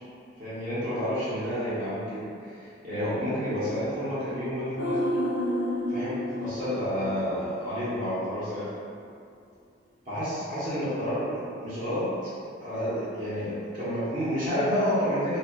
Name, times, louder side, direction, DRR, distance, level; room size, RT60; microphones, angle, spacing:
voice 1, 0.4-5.1 5.9-8.7 10.1-12.1 12.6-15.4, equal, 40° right, -12 dB, 0.8 m, -30 dB
sound 1, 4.8-8.1 8.3-8.4, left 1 dB, 75° left, 0.4 m, -31 dB
2.8 x 2.2 x 2.8 m, 2.5 s
head